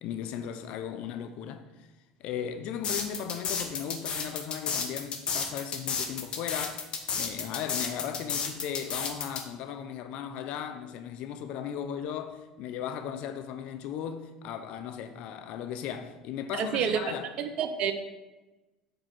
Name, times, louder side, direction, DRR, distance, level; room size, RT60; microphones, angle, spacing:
voice 1, 0.0-1.7 2.2-6.9 7.1-17.3, left 8 dB, 65° left, 0.6 m, -37 dB
sound 1, 2.8-9.4, left 6 dB, 45° left, 1.2 m, -32 dB
voice 2, 16.5-17.0 17.4-17.9, right 8 dB, 55° right, 0.8 m, -28 dB
7.9 x 4.5 x 6.1 m
supercardioid pair, 90°, 2 cm